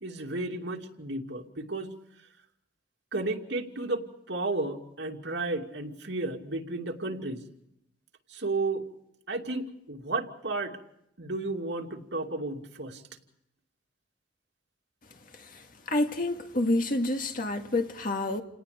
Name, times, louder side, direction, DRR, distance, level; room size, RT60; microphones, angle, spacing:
voice 1, 0.0-1.9 3.1-7.4 8.3-8.8 9.3-10.8 11.2-13.0, right 2 dB, 75° right, 2.7 m, -33 dB
voice 2, 15.9-18.4, left 2 dB, 50° left, 2.0 m, -28 dB
29.5 x 19.0 x 5.1 m
head